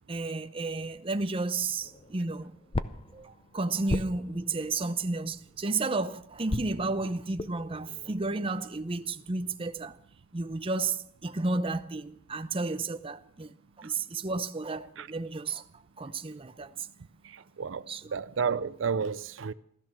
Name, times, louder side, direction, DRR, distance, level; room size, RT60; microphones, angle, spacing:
voice 1, 0.1-2.5 3.1-10.0 10.3-15.6 16.0-16.9 17.9-18.2, right 3 dB, 30° right, 0.6 m, -32 dB
sound 1, 1.8-5.9 6.5-9.5, left 2 dB, 25° left, 0.6 m, -39 dB
voice 2, 17.2-19.5, right 6 dB, 80° right, 0.5 m, -32 dB
15.5 x 13.5 x 6.1 m
head